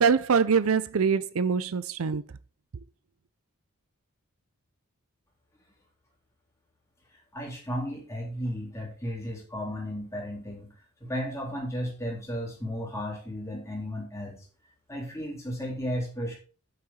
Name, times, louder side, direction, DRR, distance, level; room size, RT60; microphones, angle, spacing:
voice 1, 0.0-2.2, right 6 dB, 70° right, 0.5 m, -23 dB
voice 2, 7.3-10.7 11.0-14.4 14.9-16.3, equal, 15° left, 3.7 m, -34 dB
8.7 x 6.7 x 4.3 m
head